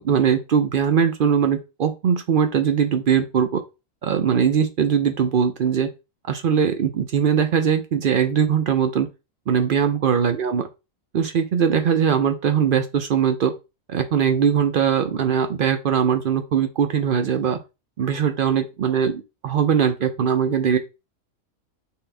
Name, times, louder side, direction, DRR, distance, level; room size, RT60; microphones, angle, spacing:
voice 1, 0.0-3.6 4.0-5.9 6.3-9.1 9.5-10.7 11.1-13.5 13.9-17.6 18.0-20.8, right 7 dB, 65° right, 8 dB, 0.5 m, -21 dB
4.2 x 3.8 x 3.4 m, 0.27 s
omnidirectional pair, 1.5 m